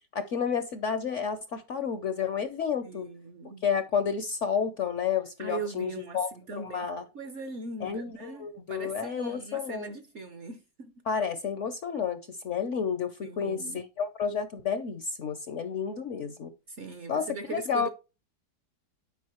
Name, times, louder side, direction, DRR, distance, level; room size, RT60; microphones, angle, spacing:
voice 1, 0.1-3.1 3.6-6.3 6.6-7.0 7.8-9.9 11.1-16.5 17.1-17.3 17.5-17.9, left 7 dB, 60° left, 0.8 m, -31 dB
voice 2, 2.8-3.7 5.4-6.2 6.5-6.9 7.1-11.0 13.2-13.8 16.7-17.9, right 4 dB, 55° right, 0.8 m, -40 dB
9.4 x 5.0 x 3.0 m
omnidirectional pair, 1.8 m